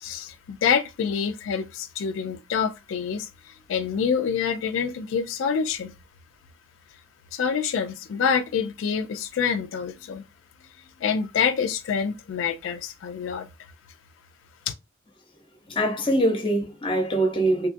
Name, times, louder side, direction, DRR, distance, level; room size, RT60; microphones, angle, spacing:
voice 1, 0.0-5.9 7.3-10.3 11.0-13.5 14.7-14.8, left 6 dB, 90° left, 0.3 m, -26 dB
voice 2, 15.7-17.7, right 1 dB, 25° left, 0.7 m, -23 dB
2.9 x 2.3 x 2.5 m
head